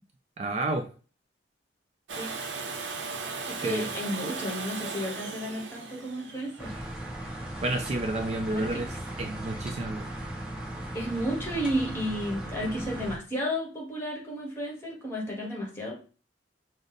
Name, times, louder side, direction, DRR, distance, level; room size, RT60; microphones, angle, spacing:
voice 1, 0.4-0.9 3.6-3.9 7.6-10.1, right 2 dB, 35° right, 5 dB, 0.4 m, -30 dB
Domestic sounds home sounds, 2.1-7.9 9.8-9.9, right 4 dB, 80° right, 0.6 m, -37 dB
voice 2, 3.4-6.7 8.5-8.8 10.9-15.9, equal, 15° left, -2 dB, 1.3 m, -32 dB
sound 1, 6.6-13.2, right 1 dB, 5° right, 0.8 m, -37 dB
5.0 x 2.0 x 4.0 m, 0.37 s
head